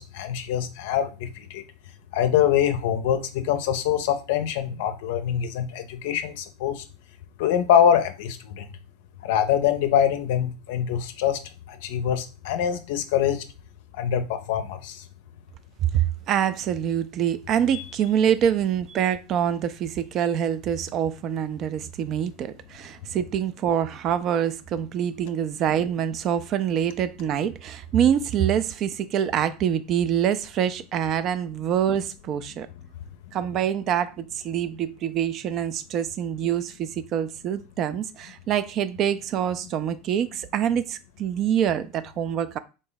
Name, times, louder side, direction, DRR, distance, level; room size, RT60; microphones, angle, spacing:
voice 1, 0.0-1.6 2.1-6.8 7.4-8.7 9.2-11.4 11.7-13.4 13.9-15.0 17.7-17.8, left 9 dB, 65° left, 0.5 m, -24 dB
voice 2, 15.9-32.7 33.3-42.6, right 9 dB, 45° right, 0.3 m, -25 dB
3.6 x 2.0 x 3.8 m
hypercardioid pair, 85°, 0 cm